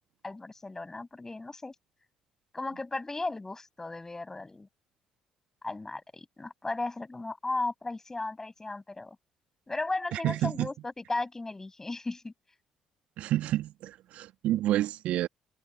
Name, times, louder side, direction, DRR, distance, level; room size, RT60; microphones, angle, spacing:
voice 1, 0.2-1.7 2.5-4.7 5.6-9.2 9.7-12.3, left 2 dB, 20° left, 6.6 m, -35 dB
voice 2, 10.1-10.7 13.2-15.3, right 14 dB, 55° right, 1.8 m, -29 dB
figure-of-eight pair, 45°, 3 cm